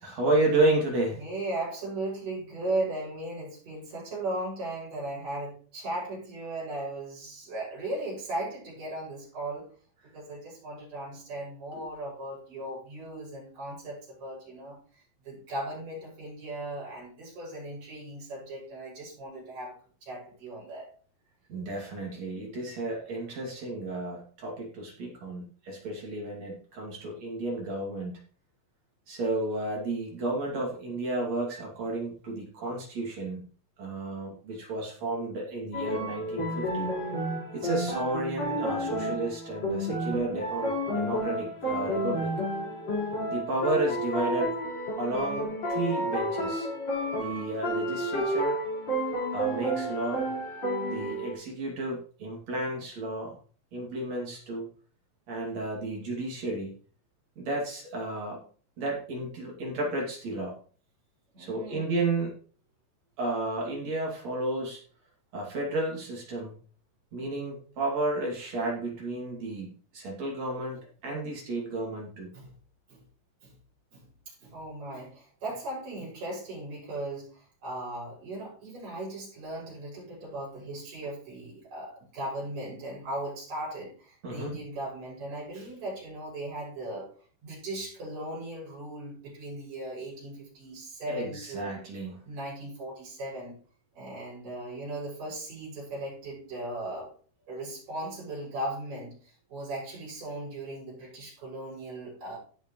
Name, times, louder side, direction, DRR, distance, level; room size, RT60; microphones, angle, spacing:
voice 1, 0.0-1.2 11.7-11.8 21.5-28.2 29.1-33.4 33.8-36.9 37.5-42.4 43.3-44.6 45.0-46.7 47.1-48.6 49.3-50.3 50.9-53.4 53.7-54.7 55.3-56.8 57.4-58.4 58.8-60.6 61.4-62.4 63.2-64.8 65.3-66.6 67.1-72.3 84.2-84.5 91.1-92.1, right 2 dB, 55° right, -2 dB, 3.7 m, -32 dB
voice 2, 1.1-9.7 10.1-14.8 15.2-20.9 61.3-61.9 72.3-72.5 72.9-73.0 73.4-73.6 73.9-87.1 87.4-91.8 92.2-93.6 93.9-97.1 97.5-102.4, right 1 dB, 70° right, -5 dB, 8.0 m, -37 dB
sound 1, 35.7-51.3, equal, 50° left, 6.5 m, -31 dB
16.5 x 6.5 x 3.2 m, 0.42 s
omnidirectional pair, 3.9 m